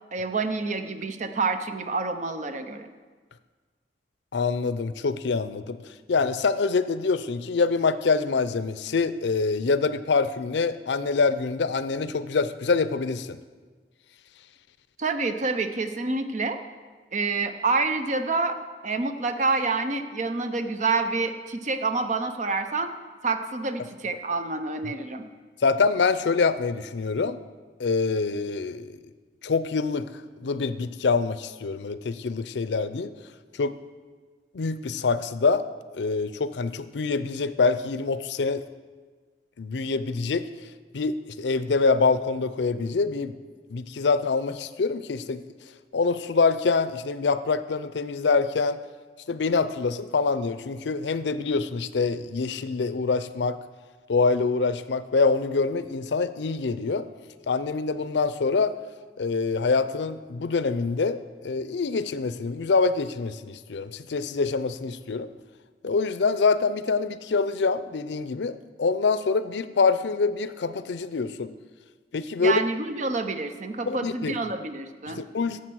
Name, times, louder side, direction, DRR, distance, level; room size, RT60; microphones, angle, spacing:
voice 1, 0.1-2.9 15.0-16.6 17.1-18.6 18.8-22.9 23.2-25.2 72.4-75.2, right 3 dB, 45° right, 8 dB, 0.7 m, -27 dB
voice 2, 4.3-5.8 6.1-13.4 25.6-27.4 27.8-29.0 29.4-30.1 30.4-33.1 33.6-33.7 34.5-35.6 35.9-38.7 39.6-40.4 40.9-43.4 43.7-45.4 45.9-48.8 49.3-53.6 54.1-57.1 57.5-58.8 59.2-65.3 65.8-71.5 72.1-72.6 73.9-74.4 75.1-75.6, left 4 dB, 85° left, 13 dB, 0.5 m, -25 dB
10.0 x 7.3 x 6.3 m, 1.4 s
head